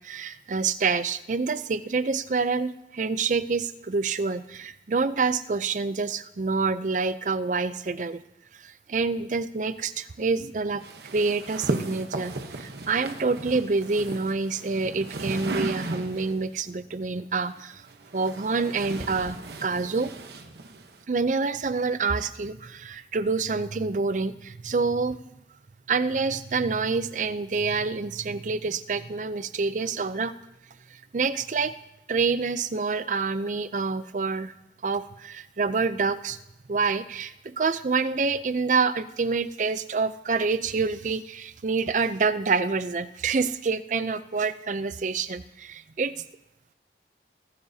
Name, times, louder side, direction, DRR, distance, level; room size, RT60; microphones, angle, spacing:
voice 1, 0.0-8.2 8.5-10.8 11.1-17.8 18.1-20.1 21.1-25.2 25.9-30.4 30.9-31.7 32.1-34.5 34.8-36.4 36.7-46.2, right 4 dB, 45° right, 14 dB, 0.5 m, -27 dB
sound 1, 10.8-16.4 17.5-21.0, right 2 dB, 65° right, 1.0 m, -36 dB
21.5 x 14.5 x 2.8 m, 0.88 s
head